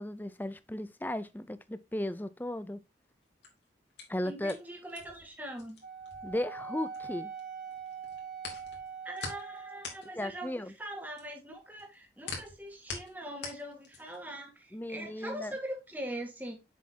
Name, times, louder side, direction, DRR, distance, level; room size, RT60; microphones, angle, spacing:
voice 1, 0.0-2.8 4.1-4.6 6.2-7.3 10.2-10.7 14.7-15.6, left 1 dB, 10° left, 0.5 m, -35 dB
sound 1, 3.2-7.4 7.7-14.3, left 4 dB, 75° left, 2.8 m, -44 dB
voice 2, 4.2-5.8 9.0-16.6, right 1 dB, 10° right, 1.6 m, -42 dB
Wind instrument woodwind instrument, 5.8-10.0, right 6 dB, 50° right, 1.4 m, -43 dB
7.3 x 6.3 x 2.9 m
head